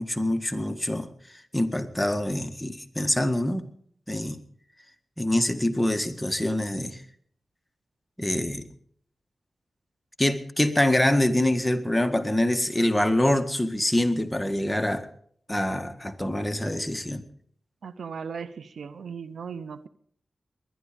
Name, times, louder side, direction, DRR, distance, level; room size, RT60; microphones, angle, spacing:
voice 1, 0.0-3.7 4.1-4.4 5.2-7.0 8.2-8.7 10.2-15.1 15.5-17.2, left 1 dB, 10° left, 8 dB, 1.8 m, -25 dB
voice 2, 17.8-19.9, right 6 dB, 80° right, 15 dB, 0.7 m, -37 dB
21.0 x 11.0 x 5.2 m, 0.62 s
cardioid pair, 45°, 0 cm